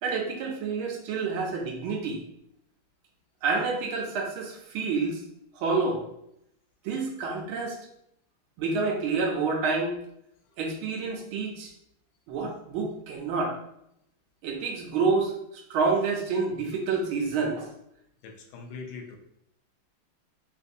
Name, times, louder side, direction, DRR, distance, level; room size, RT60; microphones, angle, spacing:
voice 1, 0.0-2.2 3.4-5.2 5.5-6.0 6.8-7.8 8.6-10.0 10.6-11.7 12.3-13.6 14.4-17.7, right 4 dB, 85° right, 1 dB, 1.5 m, -28 dB
voice 2, 18.2-19.2, left 4 dB, 80° left, 2 dB, 1.4 m, -41 dB
3.9 x 2.6 x 2.5 m, 0.77 s
omnidirectional pair, 2.3 m